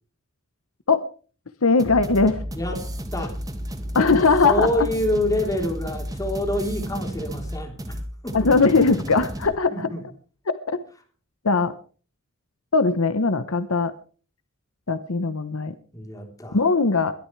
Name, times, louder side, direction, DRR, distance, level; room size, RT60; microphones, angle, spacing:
voice 1, 1.6-2.4 3.9-4.7 8.3-9.7 10.5-10.8 11.4-11.7 12.7-13.9 14.9-15.7 16.5-17.1, left 4 dB, 75° left, 12 dB, 1.0 m, -20 dB
sound 1, 1.8-9.5, equal, 15° right, 2.0 m, -32 dB
voice 2, 2.5-2.9 3.1-3.4 4.1-8.5 9.7-10.0 15.9-16.6, left 1 dB, 15° left, 2 dB, 3.6 m, -27 dB
22.0 x 12.5 x 3.3 m, 0.39 s
head